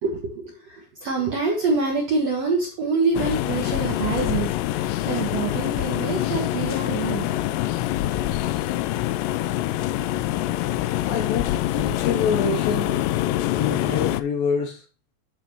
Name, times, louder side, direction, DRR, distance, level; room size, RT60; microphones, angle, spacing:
voice 1, 0.0-7.4, right 4 dB, 60° right, 1.8 m, -26 dB
sound 1, 3.2-14.2, left 14 dB, 85° left, 2.7 m, -25 dB
voice 2, 11.0-13.1 13.5-14.9, left 5 dB, 70° left, 2.4 m, -26 dB
13.0 x 5.3 x 3.0 m
omnidirectional pair, 4.9 m